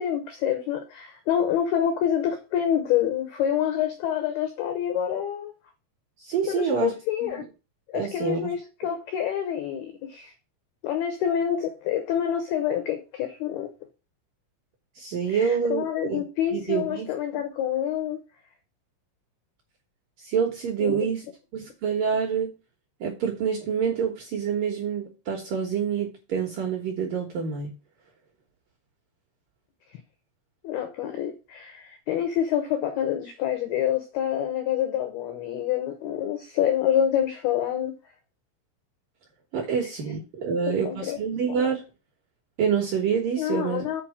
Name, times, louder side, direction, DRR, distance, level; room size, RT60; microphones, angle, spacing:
voice 1, 0.0-5.5 6.5-7.4 7.9-10.3 10.8-13.7 15.3-18.2 20.8-21.1 30.6-37.9 40.7-41.2 43.4-44.0, left 10 dB, 85° left, 2.2 m, -27 dB
voice 2, 6.2-6.9 7.2-7.4 7.9-8.5 15.0-16.2 16.5-17.4 20.2-21.3 21.5-22.5 23.0-27.7 39.5-41.8 42.6-44.0, right 7 dB, 65° right, 2.2 m, -27 dB
7.6 x 4.7 x 7.2 m
omnidirectional pair, 5.9 m